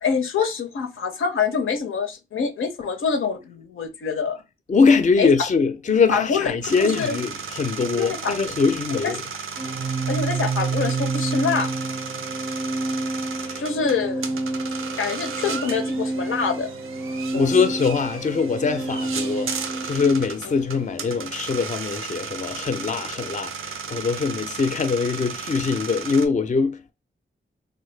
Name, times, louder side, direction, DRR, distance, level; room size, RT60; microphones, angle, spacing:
voice 1, 0.0-4.4 5.2-5.3 6.1-7.2 8.0-8.4 9.0-9.1 10.1-11.7 13.6-14.2 15.0-16.7 17.3-17.6 20.4-20.5, left 5 dB, 85° left, 0.5 m, -25 dB
voice 2, 4.7-9.2 13.5-13.6 17.3-19.6 19.8-26.9, left 5 dB, 40° left, 0.4 m, -22 dB
sound 1, 6.6-26.3, right 6 dB, 85° right, 0.4 m, -35 dB
Organ, 9.5-20.3, right 3 dB, 25° right, 0.4 m, -29 dB
3.1 x 2.1 x 3.2 m
cardioid pair, 50°, 20 cm